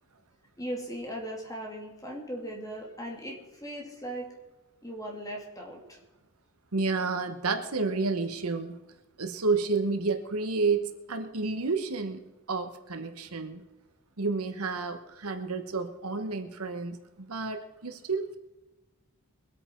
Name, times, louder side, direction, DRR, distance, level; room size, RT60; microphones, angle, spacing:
voice 1, 0.6-4.3 4.8-6.0, equal, 15° left, 0 dB, 2.6 m, -38 dB
voice 2, 6.7-8.8 9.2-12.2 12.5-13.6 14.2-18.4, right 4 dB, 90° right, 7 dB, 1.1 m, -30 dB
22.5 x 8.9 x 4.5 m, 1.1 s
head